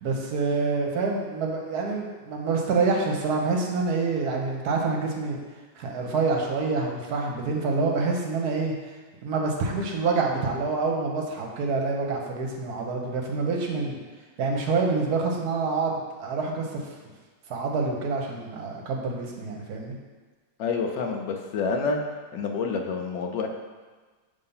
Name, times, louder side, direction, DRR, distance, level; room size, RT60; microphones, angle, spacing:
voice 1, 0.0-5.4 5.8-8.7 9.2-14.0 14.4-16.8 17.5-19.9, right 4 dB, 65° right, 0 dB, 1.3 m, -27 dB
voice 2, 20.6-22.0 22.3-23.5, left 4 dB, 90° left, 2 dB, 1.3 m, -28 dB
5.6 x 3.4 x 5.5 m, 1.4 s
omnidirectional pair, 1.9 m